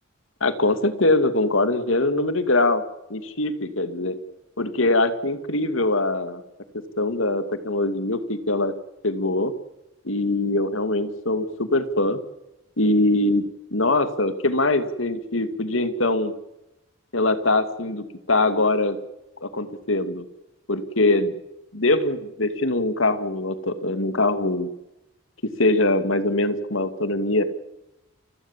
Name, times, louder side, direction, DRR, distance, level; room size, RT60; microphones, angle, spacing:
voice 1, 0.4-2.8 3.1-4.1 4.6-6.4 7.0-8.7 9.0-9.5 10.0-12.2 12.8-13.5 13.7-16.3 17.1-19.0 19.4-20.2 20.7-21.3 21.7-24.7 25.6-27.4, left 2 dB, 85° left, 11 dB, 2.4 m, -22 dB
29.5 x 16.5 x 7.4 m, 0.93 s
head